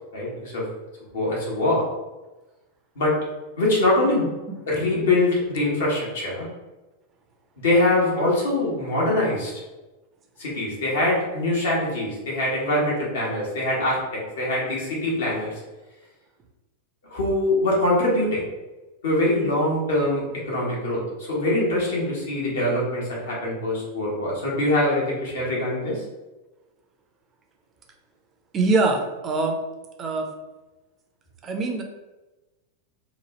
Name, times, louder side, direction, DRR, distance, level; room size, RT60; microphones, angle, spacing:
voice 1, 0.1-0.6 1.1-1.8 2.9-3.1 3.6-4.3 4.7-6.5 7.6-9.5 10.4-15.5 17.1-18.4 19.0-26.0, left 1 dB, 60° left, -4 dB, 1.2 m, -23 dB
voice 2, 28.5-29.6 30.0-30.3 31.4-31.8, right 3 dB, 25° right, 2 dB, 0.6 m, -23 dB
3.0 x 2.3 x 3.2 m, 1.1 s
figure-of-eight pair, 90°, 0 cm